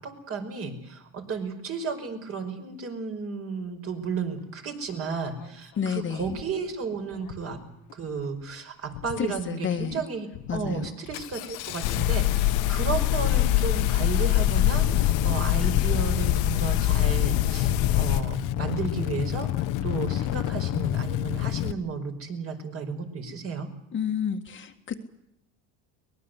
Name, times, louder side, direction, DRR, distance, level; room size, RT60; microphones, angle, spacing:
voice 1, 0.0-7.6 7.9-23.7, right 5 dB, 35° right, 5 dB, 5.3 m, -33 dB
Engine starting, 5.4-5.5 6.2-6.5 7.2-7.6 7.9-8.4 8.9-9.4 9.8-10.0 10.3-21.7, left 13 dB, 55° left, 1.2 m, -31 dB
voice 2, 5.8-6.3 9.2-10.0 10.5-10.9 23.9-25.0, left 7 dB, 30° left, 5 dB, 1.8 m, -30 dB
sound 1, 11.8-18.2, left 13 dB, 80° left, 1.7 m, -23 dB
23.5 x 21.0 x 8.1 m, 0.82 s
cardioid pair, 135°, 38 cm